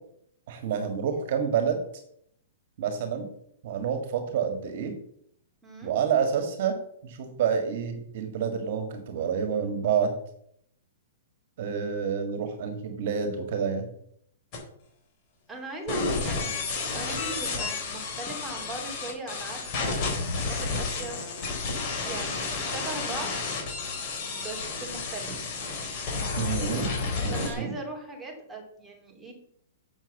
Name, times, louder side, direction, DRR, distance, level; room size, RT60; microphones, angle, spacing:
voice 1, 0.5-1.8 2.8-3.3 3.6-4.9 5.8-6.8 7.0-10.1 11.6-13.8 26.4-26.9 27.2-27.7, right 7 dB, 50° right, 7 dB, 1.7 m, -28 dB
voice 2, 5.6-5.9 15.5-21.2 22.0-23.3 24.1-25.4 27.3-29.3, right 2 dB, 5° right, -2 dB, 2.8 m, -39 dB
sound 1, 14.5-14.6 15.9-27.5, left 4 dB, 35° left, 3.9 m, -31 dB
7.4 x 7.2 x 7.1 m, 0.70 s
hypercardioid pair, 155°, 0 cm